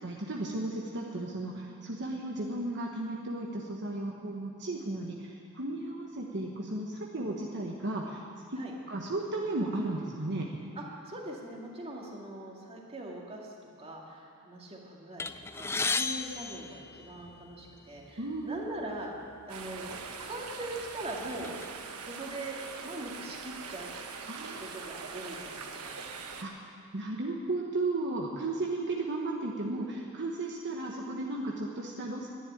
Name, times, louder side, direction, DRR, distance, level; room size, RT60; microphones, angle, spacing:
voice 1, 0.0-8.2 8.5-8.6 8.9-10.5 18.2-18.6 24.3-24.7 25.1-25.3 26.4-26.5 26.9-32.3, right 2 dB, 55° right, -1 dB, 1.2 m, -34 dB
voice 2, 10.8-15.3 15.5-19.1 19.5-21.6 22.0-22.6 22.8-23.9 24.6-26.2, right 1 dB, 25° right, -2 dB, 2.1 m, -41 dB
sound 1, 15.2-17.5 18.4-18.5 18.8-19.0 19.8-20.0 20.5-21.6, left 4 dB, 10° left, 0.3 m, -34 dB
sound 2, 19.5-26.4, right 5 dB, 85° right, 1.2 m, -42 dB
11.0 x 10.5 x 9.8 m, 2.3 s
head